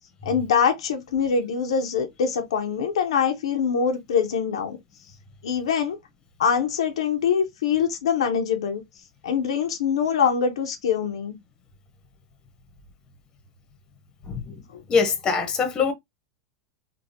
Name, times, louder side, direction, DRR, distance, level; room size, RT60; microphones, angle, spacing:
voice 1, 0.2-4.8 5.4-6.0 6.4-8.8 9.2-11.4 14.7-14.8, left 6 dB, 90° left, 0.7 m, -24 dB
voice 2, 14.3-14.6 14.9-15.9, left 5 dB, 25° left, 1.1 m, -23 dB
3.4 x 2.3 x 2.7 m
supercardioid pair, 125°, 3 cm